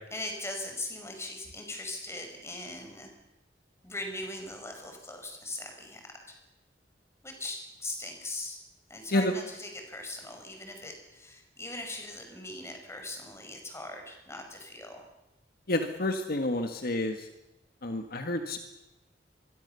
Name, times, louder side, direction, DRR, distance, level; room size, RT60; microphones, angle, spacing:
voice 1, 0.1-3.1 3.8-6.4 7.2-8.6 8.9-15.0, left 2 dB, 15° left, 4 dB, 5.6 m, -40 dB
voice 2, 15.7-17.2 17.8-18.6, left 1 dB, 55° left, 6 dB, 1.8 m, -29 dB
26.0 x 22.5 x 7.0 m, 0.98 s
head